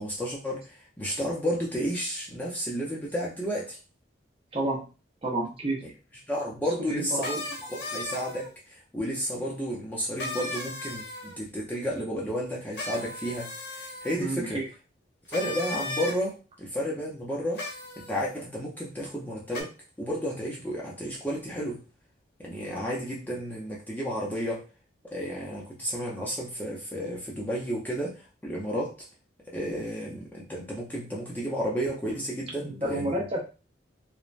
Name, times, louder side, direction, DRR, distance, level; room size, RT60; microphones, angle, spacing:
voice 1, 0.0-3.8 5.8-5.9 6.3-7.4 7.7-14.6 15.3-17.7 18.0-19.7 20.0-21.8 22.4-24.7 25.0-29.1 29.5-33.3, equal, 10° left, -4 dB, 0.5 m, -32 dB
voice 2, 4.5-4.8 5.2-5.8 6.9-7.3 14.2-14.6 32.6-33.4, right 1 dB, 30° right, -2 dB, 0.7 m, -29 dB
sound 1, 7.2-8.5 10.2-11.4 12.7-14.2 15.3-16.2 17.5-18.2 19.5-19.6, left 2 dB, 60° left, 0.7 m, -36 dB
3.1 x 2.1 x 2.4 m, 0.33 s
head